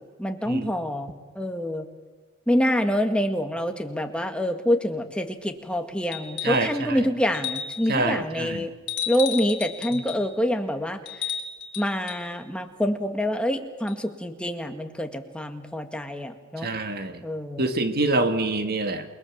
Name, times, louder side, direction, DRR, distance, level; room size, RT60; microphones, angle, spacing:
voice 1, 0.0-1.9 2.5-8.7 9.1-11.0 11.8-16.7 17.2-17.7, equal, 5° left, 5 dB, 1.8 m, -26 dB
sound 1, 6.1-6.7 7.3-7.9 8.9-10.3 11.1-12.3 13.9-14.0, left 9 dB, 60° left, 2.9 m, -33 dB
voice 2, 6.4-7.1 7.9-8.7 9.9-10.0 16.6-17.2 17.6-19.0, right 2 dB, 50° right, 7 dB, 1.7 m, -26 dB
29.0 x 21.0 x 7.4 m, 1.3 s
head